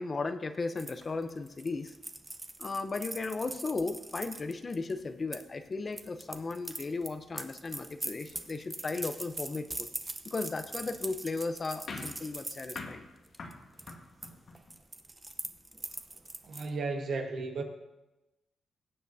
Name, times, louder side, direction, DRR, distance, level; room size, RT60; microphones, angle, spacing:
voice 1, 0.0-1.9 2.6-9.9 10.2-13.1, left 3 dB, 40° left, 9 dB, 0.7 m, -36 dB
sound 1, 0.8-5.4 5.9-12.8 13.3-13.5 13.8-14.3 14.5-16.7, right 2 dB, 20° right, 0.8 m, -42 dB
sound 2, 11.9-14.8, left 3 dB, 60° left, 1.4 m, -45 dB
voice 2, 16.4-17.6, right 3 dB, 70° right, 3 dB, 1.6 m, -34 dB
20.0 x 7.7 x 2.7 m, 0.99 s
cardioid pair, 75°, 0 cm